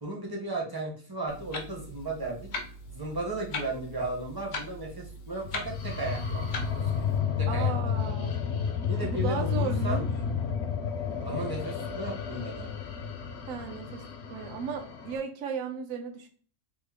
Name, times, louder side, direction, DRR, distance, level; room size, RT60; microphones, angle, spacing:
voice 1, 0.0-2.5 2.9-6.4 6.7-7.0 7.4-7.7 8.9-10.0 11.2-12.7, right 2 dB, 20° right, -2 dB, 0.6 m, -35 dB
Clock, 1.3-7.2, left 2 dB, 80° left, 0.4 m, -40 dB
sound 1, 5.4-15.2, left 7 dB, 60° left, 0.8 m, -31 dB
voice 2, 7.5-8.4 9.0-10.1 13.5-16.3, right 6 dB, 70° right, 4 dB, 1.0 m, -35 dB
3.6 x 2.0 x 3.5 m, 0.43 s
omnidirectional pair, 1.5 m